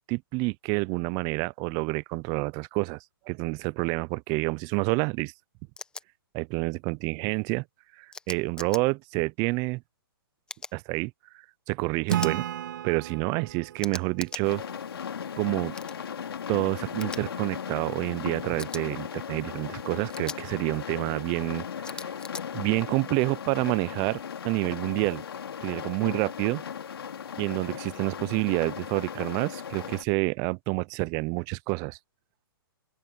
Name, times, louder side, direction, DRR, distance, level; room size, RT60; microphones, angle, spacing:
voice 1, 0.0-3.0 3.3-5.3 6.3-7.6 8.0-9.8 10.7-11.1 11.7-12.4 12.8-14.6 15.4-15.8 16.5-22.1 22.5-25.2 25.6-26.6 27.4-32.0, right 27 dB, 25° right, 0.6 m, -28 dB
sound 1, 5.8-6.0 8.1-8.8 10.5-10.8 12.1-12.4 13.8-14.4 15.7-16.0 17.0-17.2 18.6-18.8 20.1-20.4 21.8-22.4, left 4 dB, 5° left, 1.3 m, -39 dB
Acoustic guitar / Strum, 12.1-15.5, right 12 dB, 55° right, 1.6 m, -34 dB
sound 2, 14.4-30.0, left 7 dB, 75° left, 3.4 m, -37 dB
open air
hypercardioid pair, 145°, 13 cm